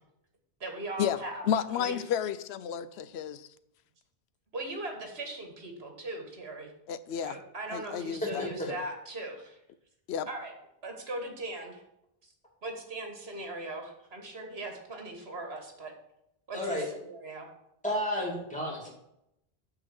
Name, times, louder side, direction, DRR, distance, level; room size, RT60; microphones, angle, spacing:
voice 1, 0.6-2.0 4.5-6.7 7.2-9.6 10.3-10.5 10.8-11.8 12.2-12.3 12.6-15.9 16.5-17.5, right 2 dB, 80° right, 1.8 m, -39 dB
voice 2, 1.5-3.5 6.9-7.4 7.7-8.8 10.1-10.3, left 9 dB, 85° left, 0.8 m, -32 dB
voice 3, 8.2-8.7 16.5-16.9 17.8-18.9, left 1 dB, 5° left, 2.5 m, -32 dB
9.1 x 3.9 x 7.1 m
omnidirectional pair, 1.1 m